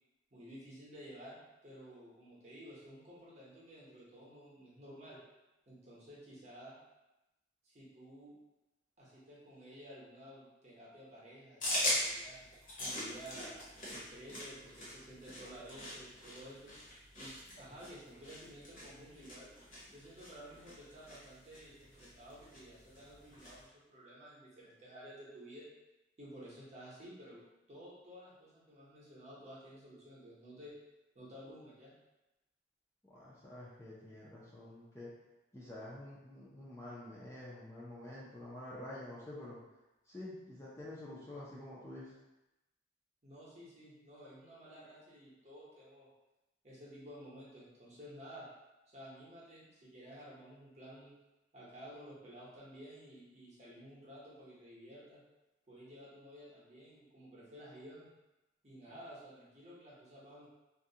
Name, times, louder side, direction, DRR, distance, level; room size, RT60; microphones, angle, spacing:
voice 1, 0.3-5.2 5.7-6.8 7.6-8.3 9.0-12.4 12.8-16.7 17.2-19.5 19.9-25.7 26.2-27.4 27.7-30.7 31.1-31.9 43.2-46.1 46.6-48.5 48.9-51.1 51.5-55.2 55.7-58.1 58.6-60.5, equal, 35° right, -7 dB, 0.7 m, -53 dB
sound 1, 11.6-23.6, left 1 dB, 45° left, 0.8 m, -42 dB
voice 2, 33.0-35.1 35.5-39.6 40.1-42.2, left 1 dB, 15° left, -8 dB, 0.4 m, -48 dB
2.4 x 2.1 x 2.7 m, 0.98 s
head